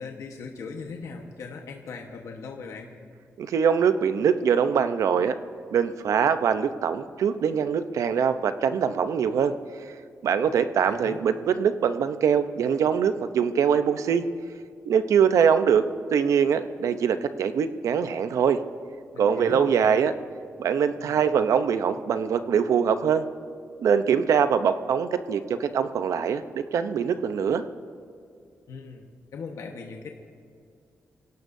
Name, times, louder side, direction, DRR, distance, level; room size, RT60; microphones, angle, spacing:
voice 1, 0.0-2.9 10.8-11.2 19.1-19.9 21.0-21.2 28.7-30.1, left 4 dB, 90° left, 2 dB, 1.2 m, -39 dB
voice 2, 3.4-5.4 5.7-9.5 10.2-14.3 14.9-18.6 19.2-20.1 20.6-23.2 23.8-27.6, right 7 dB, 90° right, 10 dB, 0.7 m, -23 dB
25.0 x 17.0 x 2.7 m, 2.4 s
wide cardioid pair, 140°, 5 cm